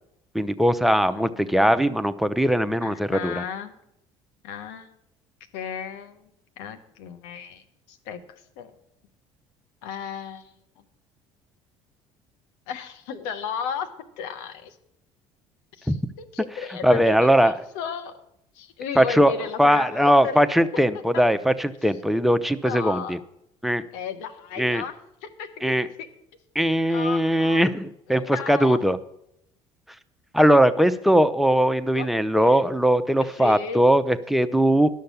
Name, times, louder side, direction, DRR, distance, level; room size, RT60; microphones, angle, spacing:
voice 1, 0.3-3.4 15.9-16.0 16.8-17.5 19.0-19.3 19.6-23.2 23.6-23.8 24.6-24.8 25.6-25.9 26.5-29.0 30.3-34.9, equal, ahead, 11 dB, 0.7 m, -20 dB
voice 2, 0.9-1.5 2.8-3.7 4.4-4.9 5.5-6.3 6.6-7.6 7.9-8.2 8.6-8.7 9.8-10.5 12.7-13.9 14.2-14.8 15.7-18.1 18.5-20.4 20.7-21.2 22.6-23.2 23.9-24.9 25.2-25.5 26.9-27.6 28.1-28.8 31.9-32.6 33.2-33.8, left 7 dB, 70° left, 8 dB, 1.1 m, -34 dB
11.5 x 6.6 x 7.0 m, 0.78 s
hypercardioid pair, 65°, 15 cm